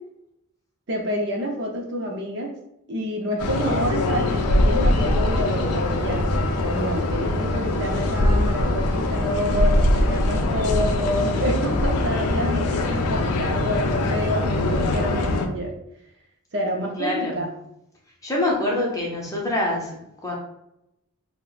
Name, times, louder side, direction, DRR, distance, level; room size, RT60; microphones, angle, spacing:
voice 1, 0.9-2.5 2.9-6.2 6.7-15.7 16.5-17.5, equal, 50° right, 0 dB, 0.5 m, -28 dB
sound 1, 3.4-15.5, left 1 dB, 85° left, 0.4 m, -22 dB
voice 2, 17.0-17.4 18.2-20.3, left 1 dB, 15° left, -3 dB, 0.6 m, -25 dB
2.4 x 2.1 x 3.9 m, 0.81 s
head